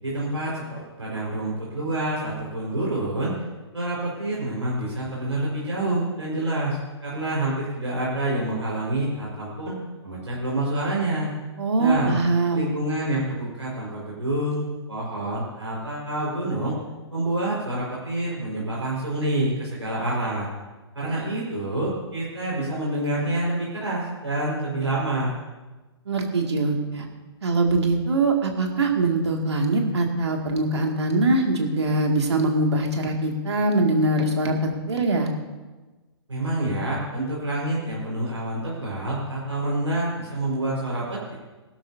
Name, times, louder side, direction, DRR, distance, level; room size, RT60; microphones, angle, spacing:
voice 1, 0.0-3.3 3.7-9.7 10.0-11.3 11.8-12.2 12.5-16.7 17.1-20.5 20.9-25.3 36.3-41.3, right 1 dB, 90° right, -6 dB, 4.9 m, -27 dB
voice 2, 11.6-12.7 26.1-27.1 27.4-34.6 34.9-35.3, right 2 dB, 70° right, 2 dB, 2.4 m, -22 dB
20.5 x 12.0 x 2.8 m, 1.2 s
figure-of-eight pair, 130°, 14 cm